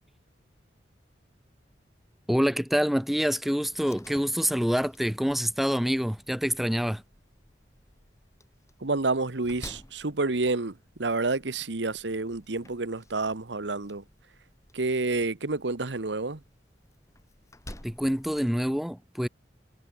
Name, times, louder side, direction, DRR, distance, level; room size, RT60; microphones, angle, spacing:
voice 1, 2.3-7.0 17.8-19.3, equal, ahead, 0.3 m, -26 dB
Slam, 3.7-18.8, left 1 dB, 15° left, 3.3 m, -52 dB
voice 2, 8.8-14.0 14.7-16.4, right 3 dB, 85° right, 1.3 m, -29 dB
head